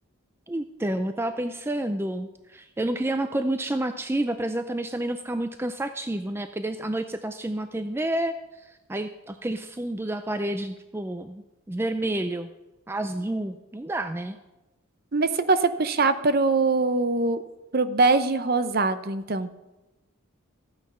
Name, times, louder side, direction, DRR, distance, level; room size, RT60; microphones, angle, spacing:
voice 1, 0.5-12.5 12.9-14.4, right 1 dB, 10° right, 9 dB, 0.4 m, -29 dB
voice 2, 15.1-17.4 17.7-19.5, right 3 dB, 45° right, 12 dB, 0.7 m, -22 dB
14.0 x 9.2 x 5.5 m, 1.0 s
head